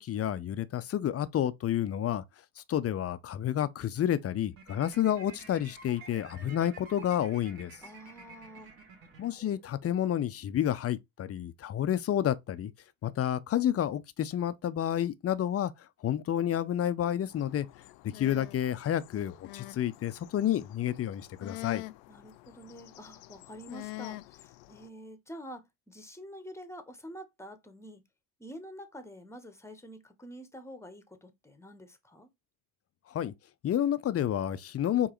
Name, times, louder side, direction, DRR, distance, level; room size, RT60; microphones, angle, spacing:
voice 1, 0.0-2.2 2.6-7.8 9.2-12.7 13.0-17.7 18.0-21.8 33.1-33.3 33.6-35.1, left 10 dB, 30° left, 0.5 m, -30 dB
sound 1, 4.5-9.8, right 4 dB, 80° right, 1.9 m, -51 dB
voice 2, 7.8-8.7 22.1-28.0 28.4-32.3, equal, 5° left, 1.0 m, -47 dB
sound 2, 17.3-24.9, left 19 dB, 75° left, 0.5 m, -47 dB
4.7 x 3.0 x 3.0 m
hypercardioid pair, 75°, 47 cm